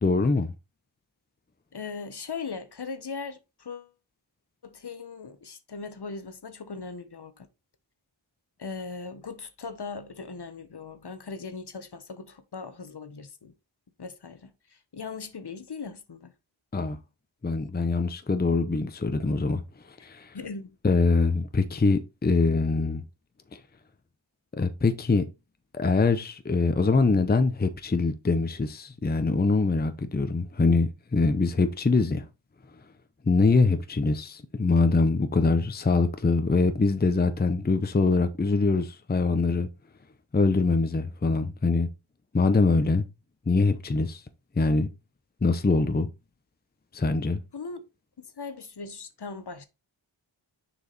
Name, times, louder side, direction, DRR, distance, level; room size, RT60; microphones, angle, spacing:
voice 1, 0.0-0.5 16.7-17.0 17.4-19.6 20.0-20.3 20.8-23.0 23.5-23.6 24.5-25.3 25.7-32.2 33.3-39.7 40.3-41.9 42.3-43.0 43.5-44.2 44.6-44.9 45.4-46.1 46.9-47.4, left 3 dB, 20° left, 0.7 m, -23 dB
voice 2, 1.7-3.9 4.6-7.5 8.6-13.5 14.0-16.3 20.3-20.8 47.5-47.8 48.2-49.7, left 4 dB, 55° left, 1.1 m, -39 dB
6.7 x 4.8 x 4.0 m
wide cardioid pair, 60°, 47 cm